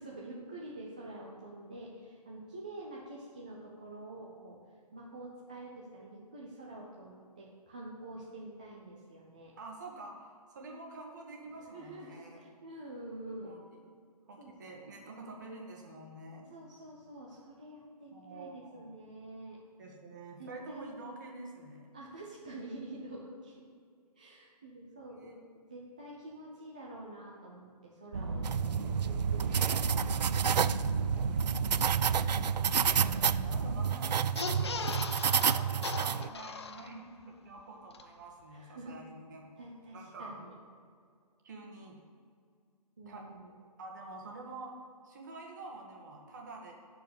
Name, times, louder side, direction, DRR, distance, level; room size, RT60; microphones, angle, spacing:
voice 1, 0.0-4.6 4.9-9.5 11.4-13.6 14.4-14.5 16.5-19.6 20.4-20.9 21.9-23.7 24.1-28.4 29.0-30.1 38.5-39.0 39.6-40.5 43.0-43.5, right 1 dB, 10° right, -5 dB, 0.5 m, -47 dB
voice 2, 9.6-12.4 13.4-13.8 14.3-16.5 18.1-18.8 19.8-21.9 25.2-25.3 33.0-35.1 35.5-39.5 39.9-40.4 41.4-42.0 43.0-43.2 43.8-44.8 45.0-46.7, right 2 dB, 25° right, 0 dB, 1.6 m, -47 dB
sound 1, 28.1-33.8, right 4 dB, 40° right, 0.7 m, -35 dB
sound 2, 28.4-36.3, right 8 dB, 85° right, 0.5 m, -30 dB
sound 3, 34.4-37.2 37.6-37.7 37.9-38.0, left 5 dB, 40° left, 0.6 m, -39 dB
13.5 x 4.6 x 8.5 m, 2.2 s
hypercardioid pair, 175°, 21 cm